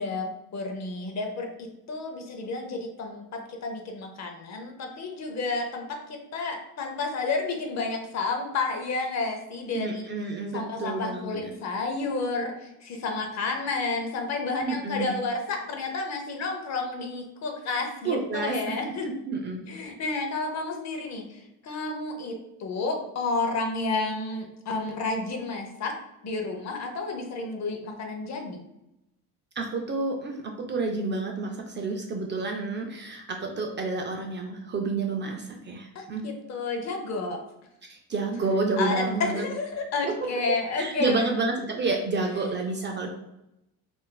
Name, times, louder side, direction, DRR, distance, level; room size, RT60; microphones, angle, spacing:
voice 1, 0.0-10.1 10.5-19.1 19.7-26.0 26.2-28.6 35.9-37.4 38.8-41.3, left 3 dB, 45° left, 3 dB, 0.7 m, -31 dB
voice 2, 9.7-11.5 14.6-15.1 18.0-18.6 19.3-19.6 29.6-36.2 37.8-39.4 40.0-40.1 40.8-43.1, right 3 dB, 30° right, 2 dB, 0.4 m, -29 dB
3.8 x 2.5 x 2.2 m, 0.87 s
cardioid pair, 110°, 38 cm